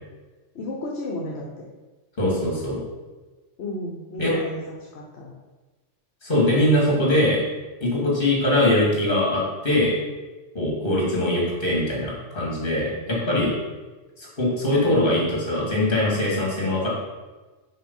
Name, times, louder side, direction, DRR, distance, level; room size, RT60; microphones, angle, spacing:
voice 1, 0.5-1.6 3.6-5.3 10.8-11.0, left 1 dB, 60° left, -1 dB, 1.1 m, -34 dB
voice 2, 2.2-2.8 4.2-4.3 6.2-7.4 7.8-9.9 10.5-13.5 14.2-16.9, left 1 dB, 45° left, -3 dB, 2.3 m, -22 dB
5.6 x 5.1 x 5.4 m, 1.2 s
omnidirectional pair, 1.2 m